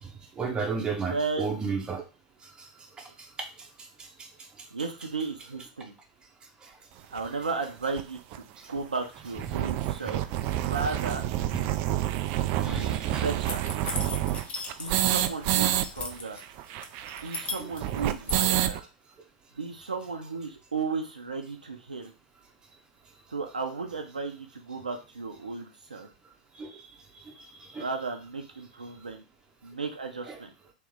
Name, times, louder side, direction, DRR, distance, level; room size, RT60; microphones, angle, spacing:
voice 1, 0.0-2.0 2.4-2.7 3.0-4.3 4.6-4.7 6.6-6.7 9.5-9.6 10.0-10.1 12.6-13.3 14.9-15.1 17.6-17.7 26.5-26.8 27.1-27.9 30.3-30.4, right 5 dB, 20° right, 3 dB, 0.9 m, -35 dB
voice 2, 1.1-1.5 4.7-5.9 7.1-10.2 10.6-11.2 12.6-13.7 14.8-16.4 17.2-18.8 19.5-22.1 23.3-26.1 27.8-29.2 29.6-30.5, right 4 dB, 85° right, 4 dB, 0.6 m, -34 dB
sound 1, 7.2-7.3 8.0-8.1 8.3-8.4 8.7-8.8 9.2-15.9 16.1-16.2 16.4-18.8, right 13 dB, 45° right, 0.3 m, -28 dB
sound 2, 13.4-15.2 15.5-16.4 16.8-18.4, left 4 dB, 30° left, 0.8 m, -37 dB
3.1 x 3.0 x 3.7 m, 0.31 s
figure-of-eight pair, 95°, 4 cm